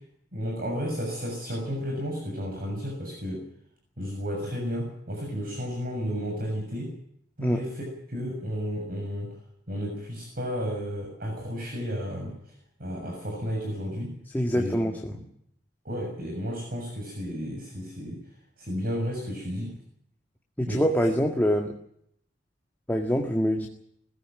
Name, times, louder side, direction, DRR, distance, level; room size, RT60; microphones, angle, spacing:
voice 1, 0.3-3.4 4.0-6.9 7.4-9.3 9.7-12.3 12.8-14.1 14.5-15.0 15.8-18.2 18.6-19.7 20.7-20.8, equal, 55° right, 1 dB, 6.8 m, -32 dB
voice 2, 14.3-15.2 20.6-21.8 22.9-23.7, equal, 10° left, 2 dB, 1.7 m, -25 dB
21.0 x 15.5 x 8.7 m, 0.72 s
head